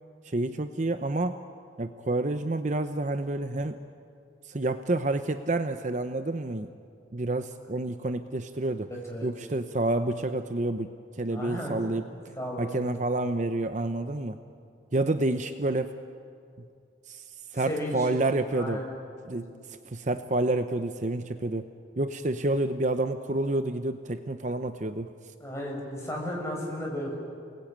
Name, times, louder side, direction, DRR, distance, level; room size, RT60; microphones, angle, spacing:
voice 1, 0.2-1.4 1.8-3.8 4.4-6.7 7.1-8.9 9.2-12.0 12.6-14.4 14.9-16.0 17.1-17.3 17.5-18.8 19.3-19.5 19.9-21.7 22.0-25.1, right 2 dB, 40° right, 9 dB, 0.7 m, -29 dB
voice 2, 11.3-11.8 12.3-13.0 17.5-18.1 18.5-18.8 19.4-19.5 25.4-27.2, equal, 15° left, -2 dB, 6.0 m, -34 dB
29.0 x 19.5 x 8.8 m, 2.4 s
head